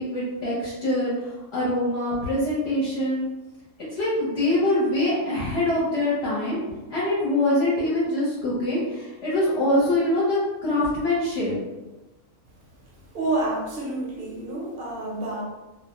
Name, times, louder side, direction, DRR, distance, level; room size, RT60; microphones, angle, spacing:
voice 1, 0.0-3.3 4.0-6.6 6.9-11.6, left 1 dB, 60° left, -9 dB, 0.9 m, -24 dB
voice 2, 13.1-15.4, right 2 dB, 55° right, -3 dB, 0.8 m, -28 dB
2.3 x 2.0 x 2.9 m, 1.1 s
omnidirectional pair, 1.4 m